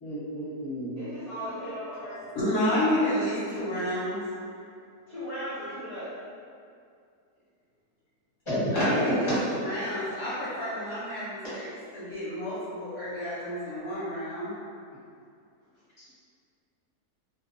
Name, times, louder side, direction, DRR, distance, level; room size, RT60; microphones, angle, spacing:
voice 1, 0.0-1.0 8.5-9.7, equal, 25° left, -12 dB, 0.7 m, -28 dB
voice 2, 0.9-2.2 5.1-6.1, equal, 35° right, -14 dB, 0.7 m, -36 dB
voice 3, 2.3-4.2 8.7-11.7 11.9-14.5, left 1 dB, 60° left, -10 dB, 0.8 m, -30 dB
2.6 x 2.0 x 2.4 m, 2.4 s
omnidirectional pair, 1.6 m